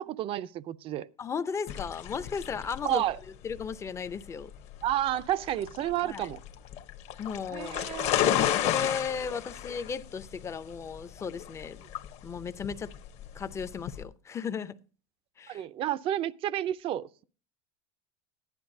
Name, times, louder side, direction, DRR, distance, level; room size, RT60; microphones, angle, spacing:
voice 1, 0.0-1.1 2.8-3.2 4.8-6.4 7.5-8.3 15.5-17.2, right 12 dB, 35° right, 0.5 m, -31 dB
voice 2, 1.2-3.0 3.4-4.5 6.0-6.3 7.2-7.8 8.6-11.8 12.2-12.9 13.3-14.8 15.4-15.7, left 6 dB, 20° left, 0.5 m, -35 dB
sound 1, 1.7-14.0, left 11 dB, 45° left, 0.9 m, -33 dB
15.0 x 10.5 x 2.6 m
supercardioid pair, 135°, 15 cm